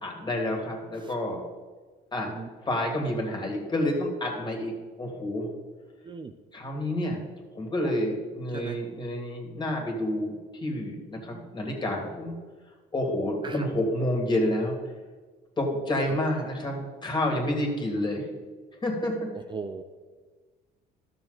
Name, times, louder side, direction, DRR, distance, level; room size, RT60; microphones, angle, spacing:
voice 1, 0.0-1.4 2.1-2.3 2.6-5.5 6.5-7.2 7.5-12.3 12.9-14.8 15.6-18.3 18.8-19.2, left 1 dB, 25° left, 1 dB, 2.4 m, -29 dB
voice 2, 19.5-19.8, right 5 dB, 30° right, 6 dB, 0.5 m, -38 dB
12.5 x 6.8 x 4.0 m, 1.4 s
cardioid pair, 110°, 17 cm